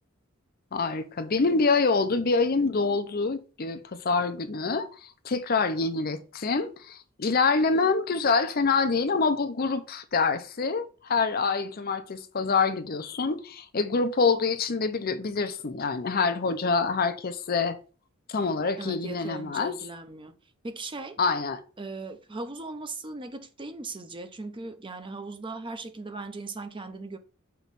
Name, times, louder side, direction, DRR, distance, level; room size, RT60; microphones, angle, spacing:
voice 1, 0.7-17.8 18.3-19.7 21.2-21.6, left 4 dB, 45° left, 0.6 m, -26 dB
voice 2, 18.8-20.3 20.6-21.2 21.8-27.2, right 3 dB, 25° right, 0.6 m, -38 dB
5.7 x 3.1 x 5.3 m
head